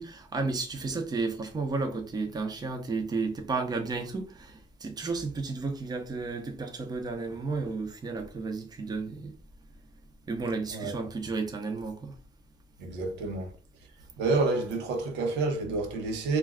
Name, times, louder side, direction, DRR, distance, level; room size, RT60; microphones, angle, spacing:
voice 1, 0.0-9.3 10.3-12.2, right 3 dB, 25° right, 0.6 m, -33 dB
voice 2, 12.8-13.5 14.2-16.4, right 3 dB, 85° right, 0.7 m, -29 dB
2.2 x 2.2 x 3.5 m
cardioid pair, 110°, 17 cm